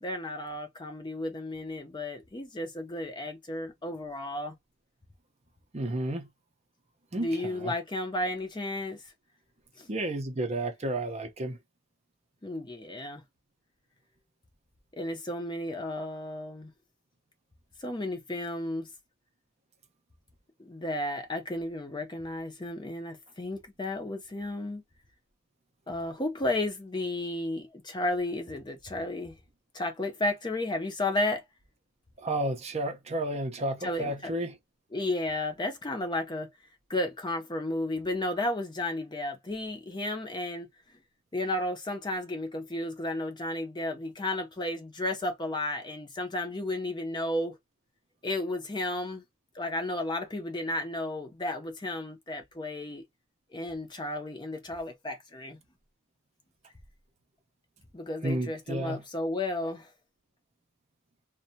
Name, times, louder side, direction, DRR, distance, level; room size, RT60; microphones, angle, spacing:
voice 1, 0.0-4.5 7.2-9.0 9.8-9.9 12.4-13.2 14.9-16.7 17.8-18.9 20.6-24.8 25.9-29.3 29.7-31.4 33.8-34.3 34.9-36.5 36.9-40.7 41.3-47.6 48.2-49.2 49.5-53.0 53.5-55.6 57.9-59.9, left 1 dB, 20° left, 0.6 m, -33 dB
voice 2, 5.7-6.3 7.1-7.7 9.9-11.6 32.2-34.6 58.2-59.0, right 1 dB, 30° right, 0.6 m, -32 dB
2.6 x 2.1 x 2.7 m
head